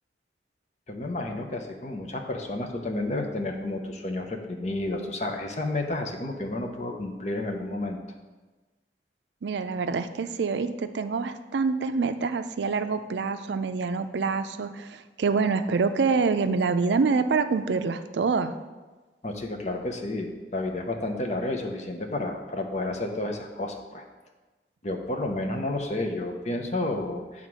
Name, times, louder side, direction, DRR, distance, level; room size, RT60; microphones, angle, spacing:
voice 1, 0.9-8.0 19.2-24.0 24.8-27.5, left 2 dB, 40° left, 3 dB, 0.8 m, -31 dB
voice 2, 9.4-18.5, right 4 dB, 80° right, 10 dB, 0.4 m, -26 dB
9.0 x 3.6 x 6.1 m, 1.2 s
head